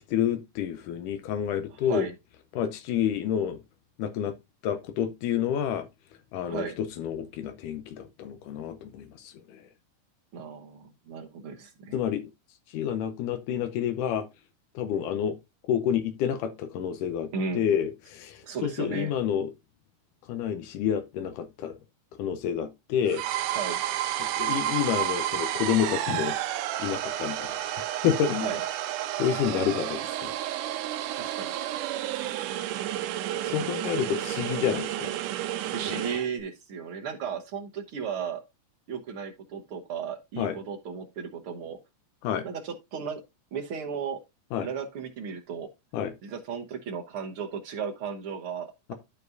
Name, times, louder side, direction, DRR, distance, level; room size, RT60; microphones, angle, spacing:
voice 1, 0.1-2.1 2.5-3.6 4.0-4.3 4.6-5.9 6.3-9.6 11.9-12.3 12.7-14.3 14.8-15.4 15.7-19.5 20.3-21.7 22.2-23.2 24.2-26.4 26.8-28.5 29.2-30.3 33.4-35.1 35.9-36.0 40.4-40.6 42.2-42.5 44.5-44.7 45.9-46.1, left 9 dB, 80° left, 2.3 m, -29 dB
voice 2, 10.3-12.0 17.3-17.6 18.4-19.1 23.5-23.8 28.4-28.6 31.2-31.5 33.4-34.1 35.6-38.4 38.9-41.8 42.4-43.2 43.5-44.2 44.6-45.7 46.2-48.9, right 6 dB, 60° right, 1.5 m, -35 dB
sound 1, 23.1-36.3, right 13 dB, 85° right, 2.3 m, -31 dB
12.5 x 5.2 x 2.5 m
omnidirectional pair, 3.7 m